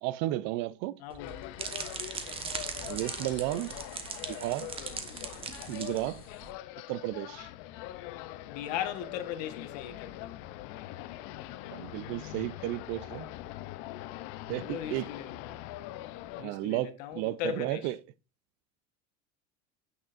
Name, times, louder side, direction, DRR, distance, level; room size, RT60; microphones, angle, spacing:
voice 1, 0.0-1.0 2.9-3.7 4.3-4.7 5.7-6.2 6.9-7.5 11.7-13.3 14.5-15.1 16.4-18.0, right 16 dB, 60° right, 0.4 m, -33 dB
voice 2, 1.0-1.4 8.5-10.3 14.6-15.7 16.4-17.9, left 10 dB, 80° left, 1.3 m, -38 dB
sound 1, 1.1-6.5, right 6 dB, 25° right, 1.1 m, -40 dB
sound 2, 1.2-16.4, left 15 dB, 65° left, 0.6 m, -43 dB
8.9 x 6.2 x 2.5 m
supercardioid pair, 130°, 21 cm